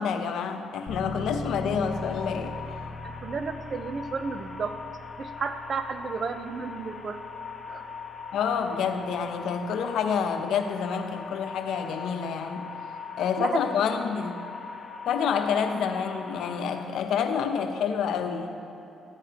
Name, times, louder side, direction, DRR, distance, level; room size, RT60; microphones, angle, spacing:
voice 1, 0.0-2.6 8.3-12.7 13.2-14.3 15.1-18.5, left 6 dB, 80° left, 6 dB, 0.8 m, -28 dB
sound 1, 0.9-11.4, left 2 dB, 50° left, 1.5 m, -42 dB
sound 2, 1.8-16.8, left 5 dB, 20° left, 1.6 m, -41 dB
voice 2, 3.0-4.8 5.2-7.2 7.7-7.8 13.4-13.6, right 5 dB, 45° right, 9 dB, 0.7 m, -32 dB
14.5 x 10.0 x 2.9 m, 2.8 s
cardioid pair, 90°, 0 cm